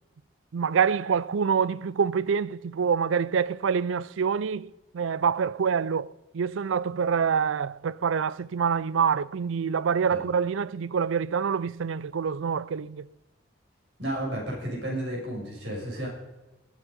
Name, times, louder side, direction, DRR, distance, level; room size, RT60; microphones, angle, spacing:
voice 1, 0.5-6.1 6.3-13.1, right 6 dB, 80° right, 0.4 m, -26 dB
voice 2, 14.0-16.1, right 1 dB, 65° right, 6.3 m, -32 dB
20.0 x 8.3 x 5.4 m
head